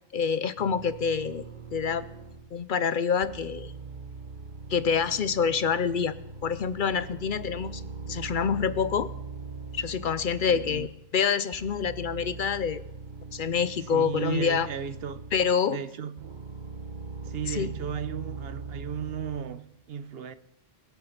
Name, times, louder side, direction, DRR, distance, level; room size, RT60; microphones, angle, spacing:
voice 1, 0.1-1.5 1.7-2.1 2.5-3.7 4.7-6.1 6.4-7.8 8.1-9.1 9.7-12.8 13.3-14.7 15.3-15.8 17.5-17.7, left 6 dB, 60° left, 0.7 m, -27 dB
sound 1, 0.6-2.6 3.2-11.1 11.5-15.7 16.2-19.4, right 4 dB, 50° right, 1.3 m, -41 dB
voice 2, 10.5-10.9 13.9-15.3 15.7-16.4 17.2-20.3, right 8 dB, 70° right, 1.0 m, -35 dB
21.5 x 7.8 x 5.8 m
omnidirectional pair, 1.1 m